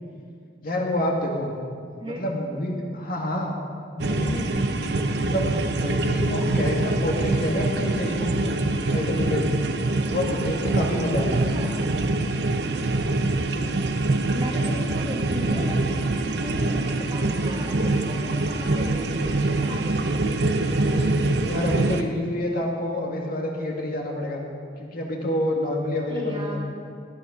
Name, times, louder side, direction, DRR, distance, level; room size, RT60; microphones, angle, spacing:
voice 1, 0.6-1.6 2.0-3.6 4.0-8.5 8.9-9.6 10.1-11.4 21.5-24.4 24.8-26.6, left 1 dB, 50° left, -1 dB, 2.3 m, -28 dB
voice 2, 2.5-2.9 11.5-11.8 14.3-15.8 16.4-20.0 20.5-21.0 26.0-26.8, equal, 30° right, -1 dB, 2.0 m, -36 dB
sound 1, 4.0-22.0, right 2 dB, 65° right, 0.8 m, -24 dB
17.5 x 11.0 x 5.2 m, 2.2 s
head